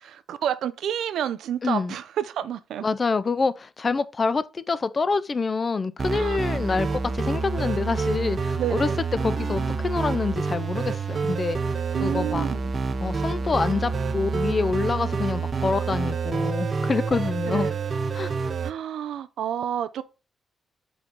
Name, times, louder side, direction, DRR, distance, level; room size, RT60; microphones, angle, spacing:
voice 1, 0.0-2.8 6.1-6.4 8.6-9.0 11.9-12.7 17.5-17.8 18.6-20.0, right 10 dB, 80° right, 0.4 m, -30 dB
voice 2, 1.6-2.0 2.8-8.9 9.2-11.6 12.0-12.5 13.0-17.7 18.1-18.3, left 4 dB, 35° left, 0.4 m, -26 dB
sound 1, 6.0-18.7, right 4 dB, 40° right, 0.7 m, -27 dB
4.6 x 3.8 x 5.3 m
cardioid pair, 100°, 0 cm